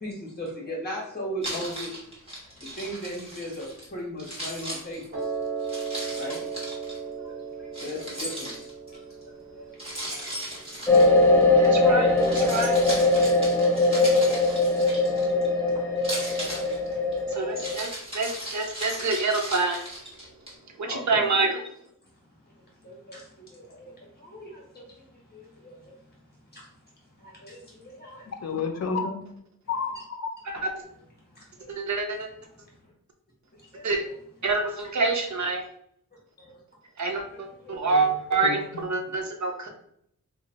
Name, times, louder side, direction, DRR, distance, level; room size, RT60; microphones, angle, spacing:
voice 1, 0.0-2.0 2.8-5.3 6.1-6.5 7.0-7.3 7.6-9.0 9.5-10.6 13.7-14.6 15.1-15.7 16.2-16.8 17.1-17.2 17.5-17.8 20.8-21.3 22.6-25.9 26.5-26.7 27.2-28.3 31.3-31.7 33.7-34.1 34.6-34.7 36.4-36.5 37.3-37.8 38.3-38.5, equal, 30° left, -3 dB, 1.4 m, -39 dB
Keys jangling, 1.4-3.9 4.2-7.0 7.7-8.9 9.8-11.7 12.1-15.5 16.0-20.5, right 1 dB, 20° right, 1.4 m, -37 dB
Piano, 5.1-11.3, right 5 dB, 40° right, 1.2 m, -36 dB
sound 1, 10.9-17.8, left 2 dB, 5° left, 0.5 m, -21 dB
voice 2, 11.6-12.8 17.3-17.9 18.1-19.8 20.8-21.5 31.7-32.3 33.8-34.0 34.4-35.6 37.0-39.7, right 3 dB, 60° right, 3 dB, 0.7 m, -26 dB
voice 3, 28.3-29.2 29.7-30.3 37.8-38.2 38.4-38.9, left 5 dB, 55° left, 4 dB, 0.6 m, -31 dB
3.0 x 2.3 x 3.9 m, 0.69 s
wide cardioid pair, 115°, 32 cm